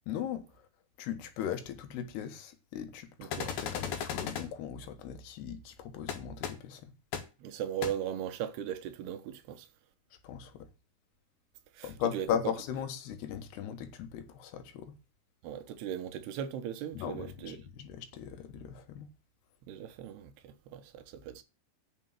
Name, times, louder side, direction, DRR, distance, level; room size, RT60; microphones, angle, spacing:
voice 1, 0.1-0.7 1.0-6.9 10.2-10.7 11.8-14.9 16.9-19.1, left 9 dB, 90° left, 3.4 m, -38 dB
voice 2, 3.2-3.5 7.4-9.7 11.7-12.3 15.4-17.6 19.7-21.4, right 10 dB, 85° right, 3.1 m, -38 dB
sound 1, 3.3-4.4 6.1-6.2 6.4-6.5 7.1-7.2 7.8-7.9, left 8 dB, 70° left, 3.1 m, -35 dB
8.8 x 6.2 x 7.5 m
omnidirectional pair, 4.5 m